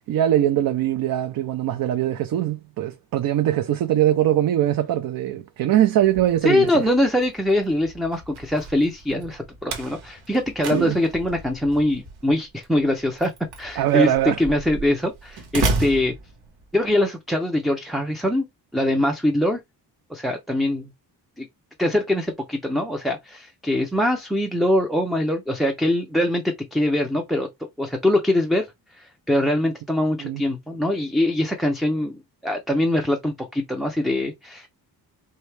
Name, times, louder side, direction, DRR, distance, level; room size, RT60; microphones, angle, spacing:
voice 1, 0.0-6.9 10.7-11.0 13.8-14.4 30.2-30.4, right 12 dB, 65° right, 0.6 m, -22 dB
Slam, 6.0-16.9, right 3 dB, 90° right, 1.3 m, -33 dB
voice 2, 6.4-13.3 13.6-14.1 14.4-16.1 16.7-18.5 18.7-19.6 20.1-20.9 21.4-21.5 21.8-27.5 27.8-34.7, left 1 dB, ahead, 0.3 m, -23 dB
4.5 x 2.7 x 3.2 m
wide cardioid pair, 175°, 38 cm